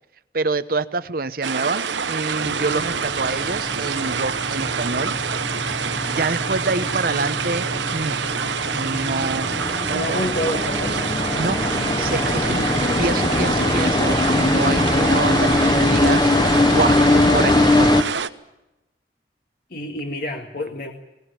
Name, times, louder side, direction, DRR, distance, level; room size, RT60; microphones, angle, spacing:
voice 1, 0.3-5.5 6.1-8.3 8.7-9.5 9.8-10.3 11.4-11.6 12.0-12.7 13.0-17.0 17.3-17.9, right 3 dB, 50° right, 13 dB, 0.9 m, -26 dB
sound 1, 1.4-18.3, right 6 dB, 85° right, 1.0 m, -26 dB
sound 2, 2.4-18.0, left 2 dB, 25° left, 0.8 m, -22 dB
voice 2, 9.9-11.1 19.7-20.9, left 1 dB, 55° left, 2 dB, 1.8 m, -28 dB
20.5 x 18.5 x 9.0 m, 0.96 s
head